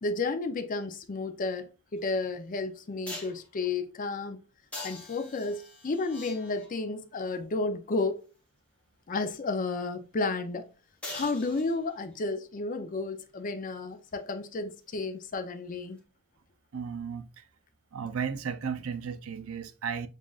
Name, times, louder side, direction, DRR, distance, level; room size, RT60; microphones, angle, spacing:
voice 1, 0.0-4.4 4.8-8.3 9.1-10.6 11.1-16.0, left 3 dB, 40° left, 0.5 m, -32 dB
sound 1, 2.0-2.1 3.1-3.5 4.7-6.9 11.0-12.1 16.0-16.1, left 2 dB, 5° left, 1.3 m, -43 dB
voice 2, 16.7-17.5 17.9-20.1, right 6 dB, 80° right, 0.5 m, -34 dB
7.1 x 2.5 x 2.4 m
head